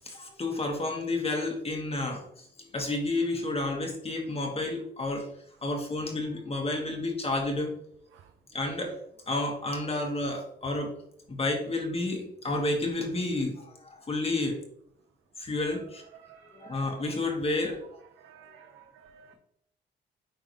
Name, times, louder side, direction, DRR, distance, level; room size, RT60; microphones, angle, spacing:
voice 1, 0.0-5.3 5.6-7.7 8.5-8.9 9.3-10.9 11.3-14.6 15.4-16.0 16.5-17.8, left 2 dB, 30° left, 1 dB, 1.6 m, -30 dB
voice 2, 16.1-17.1 18.2-19.3, right 8 dB, 75° right, 5 dB, 0.7 m, -53 dB
9.5 x 3.8 x 3.1 m, 0.70 s
cardioid pair, 90°, 20 cm